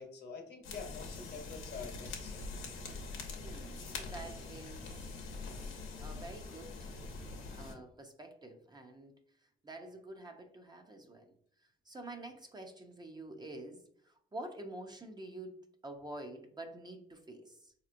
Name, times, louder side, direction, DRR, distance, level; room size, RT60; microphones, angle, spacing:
voice 1, 0.0-2.6, left 5 dB, 55° left, 3 dB, 1.0 m, -47 dB
sound 1, 0.6-7.7, left 3 dB, 90° left, 0.8 m, -44 dB
voice 2, 3.4-5.2 6.0-6.9 7.5-9.1 9.6-11.3 11.6-15.6 15.8-17.7, right 1 dB, 20° right, 3 dB, 0.6 m, -48 dB
4.1 x 2.9 x 2.5 m, 0.63 s
cardioid pair, 90°, 20 cm